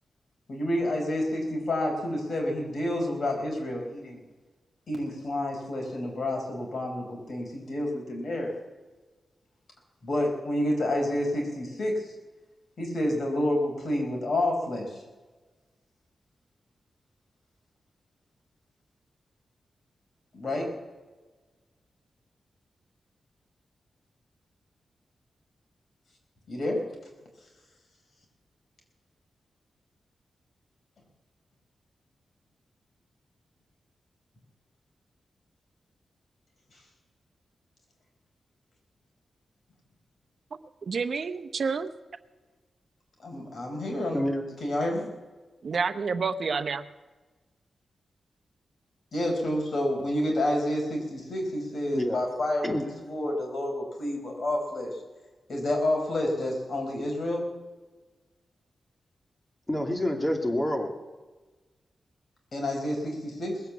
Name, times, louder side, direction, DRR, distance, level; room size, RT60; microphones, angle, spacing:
voice 1, 0.5-4.2 4.9-8.5 10.0-12.1 12.8-14.9 20.3-20.7 26.5-26.8 43.2-44.3 44.6-45.1 49.1-54.9 55.5-57.4 62.5-63.6, left 1 dB, 60° left, 4.4 m, -29 dB
voice 2, 40.9-41.9 45.6-46.8, right 5 dB, 65° right, 0.8 m, -29 dB
voice 3, 59.7-60.9, left 1 dB, 20° left, 2.5 m, -27 dB
20.0 x 8.2 x 7.1 m
cardioid pair, 90°, 0 cm